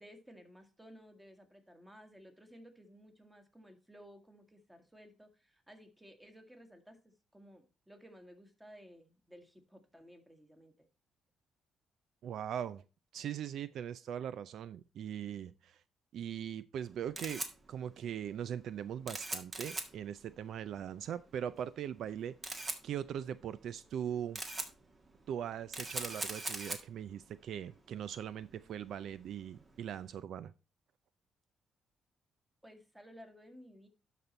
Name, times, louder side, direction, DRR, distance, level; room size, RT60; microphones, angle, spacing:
voice 1, 0.0-10.9 32.6-33.9, equal, 10° right, 6 dB, 1.8 m, -56 dB
voice 2, 12.2-12.8 13.1-15.8 16.1-22.4 22.8-24.4 25.3-30.5, right 9 dB, 70° right, 16 dB, 0.4 m, -40 dB
Camera, 16.8-30.1, right 2 dB, 30° right, 1.6 m, -44 dB
12.0 x 4.2 x 4.4 m, 0.31 s
cardioid pair, 90°, 0 cm